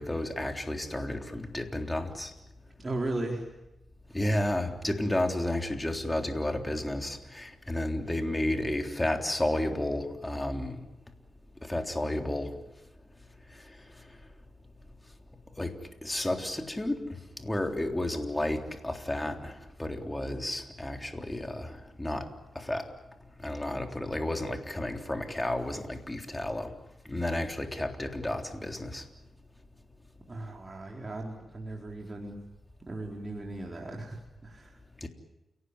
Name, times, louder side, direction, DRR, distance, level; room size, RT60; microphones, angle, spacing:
voice 1, 0.0-2.3 4.1-10.8 11.6-12.5 15.6-15.7 16.0-22.3 22.6-22.9 23.4-26.7 27.1-29.0 35.0-35.1, left 1 dB, 15° left, 4 dB, 3.6 m, -32 dB
voice 2, 2.8-3.5 30.3-32.4 32.8-34.8, right 2 dB, 30° right, -1 dB, 4.3 m, -37 dB
29.5 x 18.0 x 9.9 m, 0.94 s
cardioid pair, 75°, 0 cm